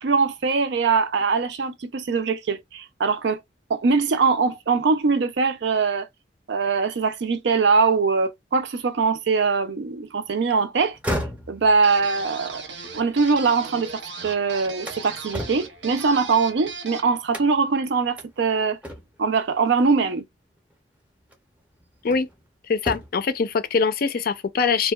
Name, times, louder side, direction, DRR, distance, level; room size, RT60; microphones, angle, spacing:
voice 1, 0.0-3.4 3.7-6.1 6.5-11.0 11.5-12.6 12.9-18.8 19.2-20.2, right 4 dB, 70° right, 0.5 m, -22 dB
sound 1, 10.8-14.0 14.4-16.7 17.3-17.8 18.2-18.3 18.8-19.3 20.6-20.7 21.3-22.4 22.7-23.3, equal, 10° right, 0.6 m, -35 dB
sound 2, 11.8-17.2, right 5 dB, 85° right, 0.8 m, -37 dB
voice 2, 22.7-24.9, left 5 dB, 55° left, 0.4 m, -23 dB
2.6 x 2.2 x 2.2 m
head